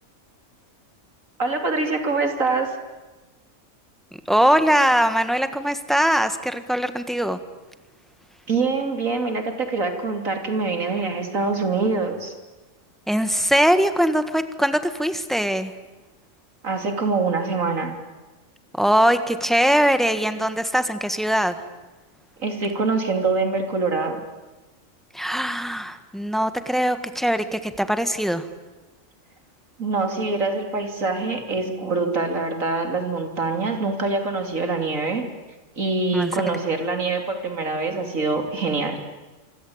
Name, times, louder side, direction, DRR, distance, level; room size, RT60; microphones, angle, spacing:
voice 1, 1.4-2.8 8.5-12.3 16.6-17.9 22.4-24.2 29.8-35.3 35.8-39.0, right 3 dB, 75° right, 5 dB, 3.5 m, -24 dB
voice 2, 4.3-7.4 13.1-15.7 18.7-21.5 25.1-28.5 36.1-36.3, equal, ahead, 9 dB, 1.5 m, -21 dB
25.5 x 25.5 x 8.8 m, 1.2 s
omnidirectional pair, 1.4 m